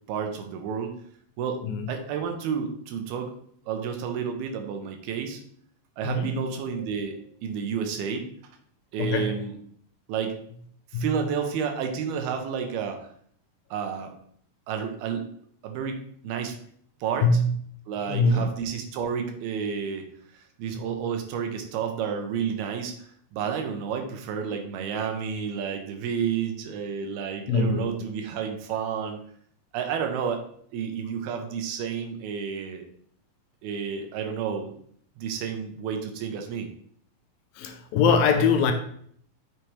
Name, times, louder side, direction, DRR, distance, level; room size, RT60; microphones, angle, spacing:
voice 1, 0.1-0.9 1.4-1.6 1.9-3.4 3.7-5.4 6.0-8.3 8.9-9.5 10.1-10.4 10.9-13.1 13.7-14.1 14.7-15.3 15.6-16.6 17.0-17.3 17.9-20.1 20.3-29.2 29.7-30.4 30.7-32.8 33.6-34.7 35.2-36.7, right 7 dB, 85° right, 2.9 m, -31 dB
voice 2, 9.0-9.3 10.9-11.1 17.2-17.5 18.1-18.5 27.5-27.9 37.6-38.7, left 4 dB, 80° left, 2.4 m, -22 dB
7.7 x 5.8 x 3.3 m
omnidirectional pair, 4.3 m